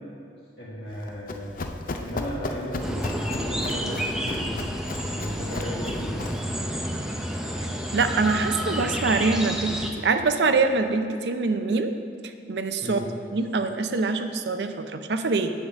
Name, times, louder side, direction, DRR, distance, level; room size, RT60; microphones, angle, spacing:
voice 1, 0.6-1.7 2.0-4.5 5.1-6.3 6.6-6.7 12.8-13.1, equal, 75° left, -9 dB, 1.6 m, -35 dB
Run, 0.9-6.5, left 2 dB, 50° left, 0.5 m, -36 dB
sound 1, 2.8-9.9, equal, 5° right, 0.6 m, -30 dB
voice 2, 7.9-11.9 12.5-13.0 13.3-15.5, right 3 dB, 65° right, 8 dB, 0.5 m, -24 dB
9.6 x 3.9 x 7.2 m, 2.4 s
head